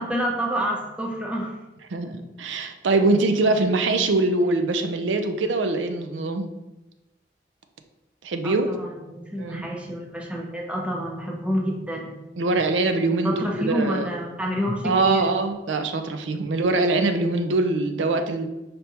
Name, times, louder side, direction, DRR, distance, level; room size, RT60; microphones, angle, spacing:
voice 1, 0.0-1.5 8.4-12.2 13.2-15.3, equal, 5° right, 0 dB, 0.5 m, -28 dB
voice 2, 1.9-6.5 8.2-8.8 9.4-9.7 12.4-14.1 14.8-18.5, right 2 dB, 75° right, 7 dB, 0.5 m, -23 dB
5.3 x 3.4 x 2.9 m, 1.0 s
head